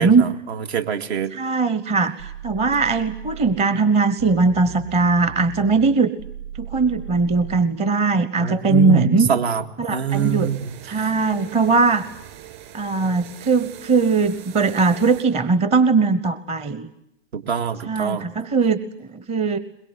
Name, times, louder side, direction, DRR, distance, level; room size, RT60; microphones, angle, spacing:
voice 1, 0.0-1.3 8.4-9.6 9.9-10.7 10.9-11.1 17.3-18.3, right 7 dB, 60° right, 7 dB, 2.4 m, -24 dB
voice 2, 1.3-6.1 6.6-9.3 9.8-10.5 10.8-12.1 12.7-16.9 17.8-19.6, right 4 dB, 15° right, 13 dB, 1.1 m, -20 dB
sound 1, 2.2-3.7 4.2-7.7, right 7 dB, 90° right, 4.1 m, -37 dB
sound 2, 10.1-15.2, right 12 dB, 40° right, 6.7 m, -42 dB
22.0 x 22.0 x 9.7 m, 0.78 s
hypercardioid pair, 120°, 36 cm